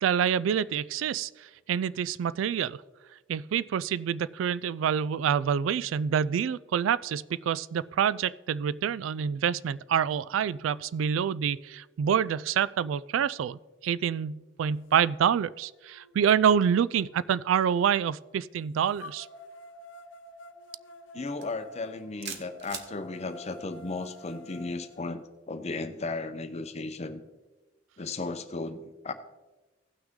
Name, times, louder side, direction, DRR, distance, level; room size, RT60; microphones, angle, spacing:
voice 1, 0.0-2.8 3.3-19.3, right 8 dB, 85° right, 19 dB, 0.3 m, -27 dB
sound 1, 15.2-15.3 15.8-17.7 19.0-25.0, left 1 dB, 75° left, 0.8 m, -50 dB
voice 2, 21.1-27.2 28.0-29.1, left 3 dB, 35° left, 9 dB, 0.7 m, -35 dB
sound 2, 21.4-21.6 22.2-22.9, right 7 dB, 60° right, 1.0 m, -38 dB
16.0 x 6.0 x 3.7 m, 1.2 s
head